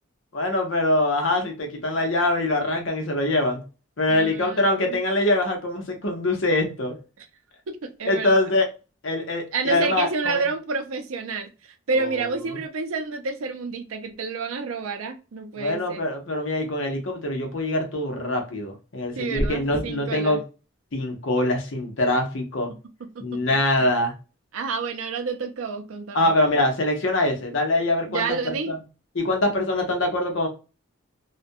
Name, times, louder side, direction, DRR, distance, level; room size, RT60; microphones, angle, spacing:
voice 1, 0.3-3.6 4.0-7.0 8.1-8.7 9.0-10.5 11.9-12.2 12.5-12.6 15.6-20.4 20.9-22.7 23.2-24.1 26.1-28.8 29.2-30.5, left 1 dB, 65° left, 3 dB, 0.7 m, -24 dB
voice 2, 4.1-5.0 7.7-8.5 9.5-11.5 11.9-16.0 19.2-20.4 23.1-23.2 23.8-23.9 24.5-26.3 28.1-28.7, right 4 dB, 85° right, 7 dB, 0.5 m, -29 dB
sound 1, 19.3-19.8, equal, 10° left, 0.7 m, -27 dB
2.3 x 2.2 x 2.6 m, 0.31 s
head